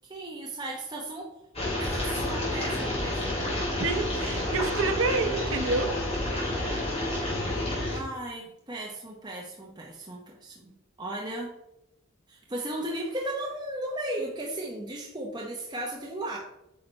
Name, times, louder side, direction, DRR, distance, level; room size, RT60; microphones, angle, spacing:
voice 1, 0.1-1.3 1.8-3.4 7.9-10.7 11.0-11.5 12.3-16.4, right 1 dB, 20° right, -2 dB, 1.0 m, -36 dB
sound 1, 1.5-8.0, left 1 dB, 30° left, 3.0 m, -29 dB
voice 2, 3.8-5.9, right 3 dB, 65° right, 7 dB, 0.9 m, -28 dB
8.9 x 5.7 x 3.3 m, 0.84 s
head